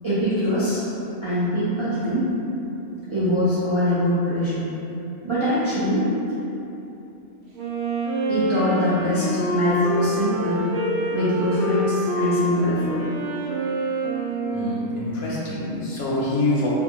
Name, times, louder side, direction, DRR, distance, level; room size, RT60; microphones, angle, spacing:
voice 1, 0.0-0.8 1.2-2.3 3.1-4.6 5.2-6.0 8.3-10.7 11.1-13.0, equal, 45° right, -13 dB, 0.4 m, -23 dB
Wind instrument woodwind instrument, 7.5-15.3, right 1 dB, 65° right, 0.8 m, -26 dB
voice 2, 14.5-16.7, left 2 dB, 70° left, -6 dB, 0.9 m, -25 dB
2.6 x 2.2 x 2.9 m, 2.9 s
omnidirectional pair, 1.3 m